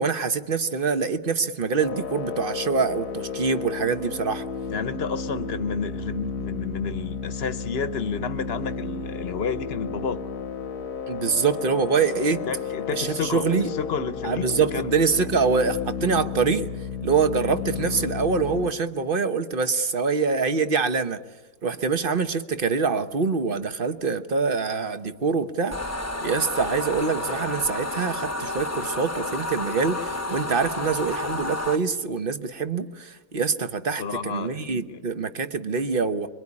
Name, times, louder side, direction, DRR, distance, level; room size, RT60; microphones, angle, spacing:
voice 1, 0.0-4.5 11.1-12.4 12.9-13.7 14.2-16.7 17.0-21.2 21.6-25.8 26.2-36.3, right 5 dB, 40° right, 1.2 m, -25 dB
sound 1, 1.8-18.7, left 5 dB, 90° left, 2.0 m, -33 dB
voice 2, 4.7-10.2 12.3-15.0 16.0-16.2 34.0-35.0, left 5 dB, 45° left, 1.2 m, -31 dB
sound 2, 25.7-31.8, left 2 dB, 10° left, 1.0 m, -30 dB
25.5 x 23.5 x 9.8 m
omnidirectional pair, 1.7 m